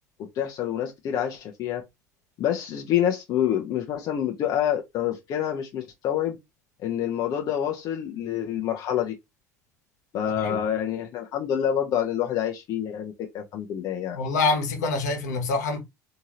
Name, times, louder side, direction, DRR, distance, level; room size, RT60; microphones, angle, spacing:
voice 1, 0.3-1.8 2.4-6.4 6.8-9.1 10.1-14.2, left 10 dB, 45° left, 0.7 m, -27 dB
voice 2, 14.1-15.8, left 3 dB, 75° left, 1.2 m, -26 dB
3.6 x 2.9 x 2.9 m
hypercardioid pair, 70°, 9 cm